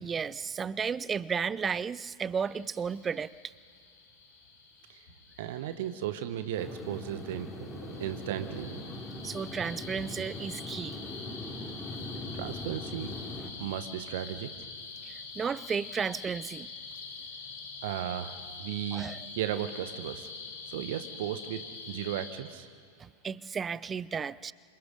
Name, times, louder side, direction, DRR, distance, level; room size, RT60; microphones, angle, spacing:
voice 1, 0.0-3.3 9.2-11.0 11.6-11.7 15.0-16.7 18.9-19.2 23.0-24.5, right 6 dB, 20° right, 0.5 m, -33 dB
sound 1, 2.4-22.3, left 4 dB, 60° left, 4.1 m, -45 dB
voice 2, 5.4-8.9 12.3-13.1 13.6-14.5 17.8-19.0 19.4-20.3 20.6-21.6 21.9-22.7, right 11 dB, 55° right, 1.2 m, -35 dB
sound 2, 6.6-13.5, left 2 dB, 15° left, 4.2 m, -41 dB
26.5 x 26.5 x 5.3 m
figure-of-eight pair, 90°, 0 cm